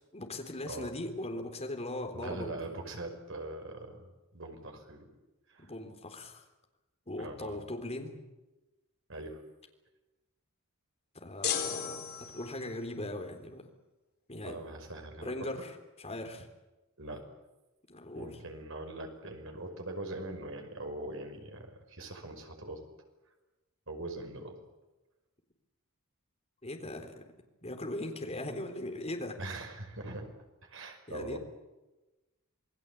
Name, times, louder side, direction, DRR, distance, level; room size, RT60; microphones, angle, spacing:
voice 1, 0.1-2.5 5.6-6.5 7.1-8.2 11.1-13.7 14.3-14.6 15.2-16.5 17.9-18.4 26.6-27.1 27.6-29.4 31.1-31.4, left 1 dB, 30° left, 4 dB, 3.9 m, -39 dB
voice 2, 2.1-5.1 5.5-5.7 7.2-7.6 9.1-9.4 14.4-15.3 17.0-17.2 18.1-22.9 23.9-24.6 29.4-30.3 30.6-31.4, right 2 dB, 65° right, 4 dB, 5.5 m, -42 dB
sound 1, 11.4-12.8, left 8 dB, 50° left, 4.3 m, -35 dB
28.0 x 19.5 x 8.4 m, 1.1 s
head